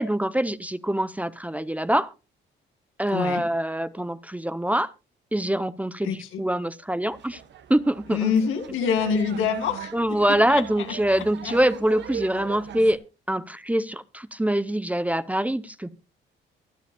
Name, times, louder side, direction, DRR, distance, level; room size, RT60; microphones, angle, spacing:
voice 1, 0.0-2.1 3.0-4.9 5.3-7.4 7.7-8.3 9.9-13.0 13.3-15.9, right 1 dB, 5° right, 0.7 m, -24 dB
voice 2, 3.1-3.4 6.0-6.4 8.1-9.9 10.5-10.6 11.1-11.5, left 6 dB, 90° left, 2.2 m, -25 dB
sound 1, 7.1-13.0, right 8 dB, 65° right, 1.2 m, -39 dB
24.0 x 8.1 x 2.3 m
cardioid pair, 90°, 20 cm